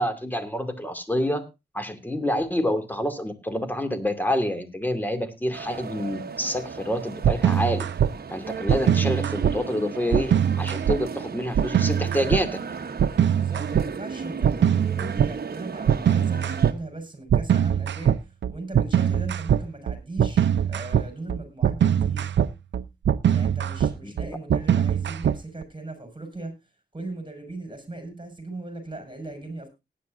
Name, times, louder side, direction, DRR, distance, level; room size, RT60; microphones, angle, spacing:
voice 1, 0.0-1.5 1.7-7.9 8.3-12.6 24.0-24.4, equal, 10° left, 8 dB, 2.5 m, -27 dB
sound 1, 5.5-16.7, right 5 dB, 60° right, 1.0 m, -35 dB
sound 2, 7.2-8.1 8.7-9.6 10.1-11.0 11.6-12.4 13.0-13.9 14.4-15.3 15.9-16.8 17.3-25.6, right 9 dB, 85° right, 0.6 m, -22 dB
voice 2, 13.4-18.2 18.5-22.2 23.3-26.6 26.9-29.7, right 2 dB, 25° right, 7 dB, 5.6 m, -38 dB
19.0 x 9.9 x 2.6 m, 0.24 s
cardioid pair, 70°, 18 cm